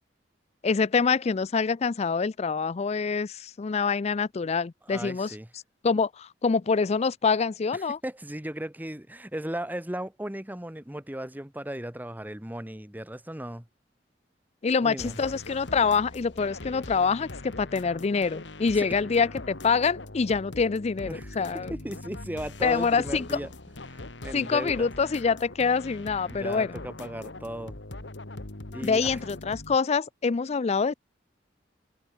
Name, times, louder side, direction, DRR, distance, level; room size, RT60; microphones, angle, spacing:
voice 1, 0.6-5.3 5.8-8.0 14.6-21.7 22.6-23.4 24.3-26.8 28.8-30.9, left 5 dB, 35° left, 0.4 m, -26 dB
voice 2, 4.9-5.5 7.7-13.7 14.8-15.2 18.8-18.9 21.1-23.5 23.9-24.9 26.3-27.8 28.7-29.2, right 1 dB, 10° right, 1.5 m, -36 dB
sound 1, 15.0-29.8, left 2 dB, 90° left, 2.2 m, -41 dB
head